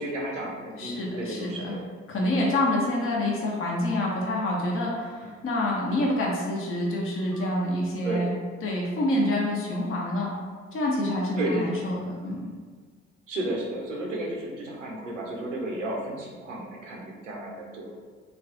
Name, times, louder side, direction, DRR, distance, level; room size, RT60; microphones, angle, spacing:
voice 1, 0.0-1.8 8.0-8.3 11.4-11.6 13.3-17.9, right 1 dB, 85° right, -1 dB, 0.6 m, -32 dB
voice 2, 0.8-1.8 2.1-8.3 8.6-10.4 10.7-12.5, left 1 dB, 35° left, -2 dB, 0.8 m, -27 dB
sound 1, 2.5-2.8 4.9-5.1 7.3-7.5 9.7-10.3, right 1 dB, ahead, 0.8 m, -48 dB
3.2 x 2.3 x 3.8 m, 1.6 s
figure-of-eight pair, 45°, 37 cm